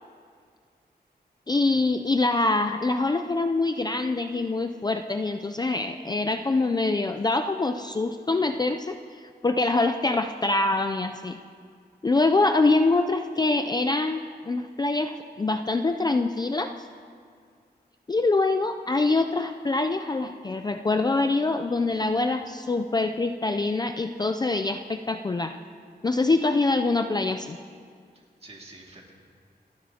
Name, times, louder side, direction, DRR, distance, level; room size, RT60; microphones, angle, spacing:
voice 1, 1.5-11.4 12.0-16.7 18.1-25.6 26.0-27.6, left 3 dB, 25° left, 6 dB, 0.4 m, -25 dB
voice 2, 28.1-29.1, right 2 dB, 35° right, -1 dB, 2.1 m, -49 dB
28.0 x 10.5 x 2.8 m, 2.1 s
wide cardioid pair, 125°, 17 cm